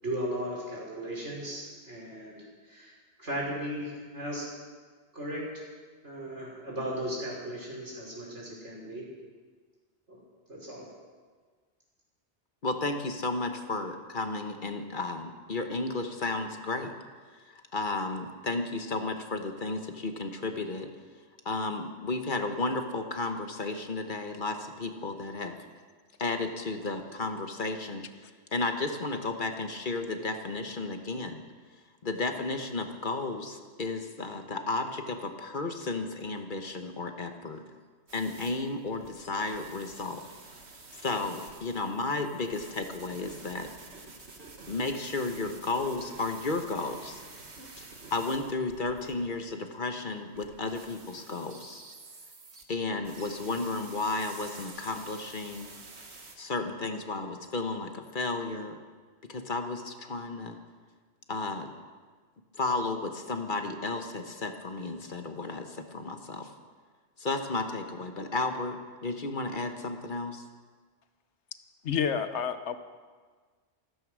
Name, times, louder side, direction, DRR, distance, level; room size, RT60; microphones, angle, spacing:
voice 1, 0.0-2.9 3.2-4.5 5.1-5.6 6.0-9.1 10.1-10.2 10.5-10.8, equal, 80° right, -4 dB, 5.3 m, -36 dB
voice 2, 12.6-16.9 17.3-20.9 21.4-25.6 26.2-28.0 28.5-31.4 32.0-37.6 38.1-40.2 41.0-43.7 44.7-47.2 47.7-51.8 52.7-55.7 56.4-58.8 59.3-60.6 61.3-61.7 62.5-66.5 67.2-70.4, left 3 dB, 45° left, 6 dB, 1.3 m, -33 dB
sound 1, 38.1-49.5 50.3-52.6 53.0-56.4, right 3 dB, 65° right, 1.8 m, -49 dB
voice 3, 71.8-72.8, left 7 dB, 75° left, 10 dB, 1.2 m, -29 dB
14.5 x 14.0 x 6.3 m, 1.5 s
omnidirectional pair, 1.2 m